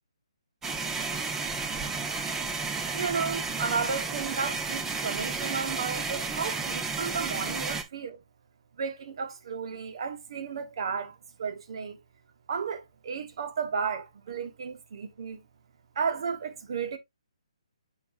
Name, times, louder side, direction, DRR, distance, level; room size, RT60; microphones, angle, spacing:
sound 1, 0.6-7.8, right 4 dB, 10° right, 0.9 m, -32 dB
voice 1, 2.9-8.2 8.8-12.0 12.5-15.4 15.9-17.0, right 5 dB, 50° right, 1.3 m, -33 dB
8.3 x 4.8 x 2.6 m
figure-of-eight pair, 140°, 4 cm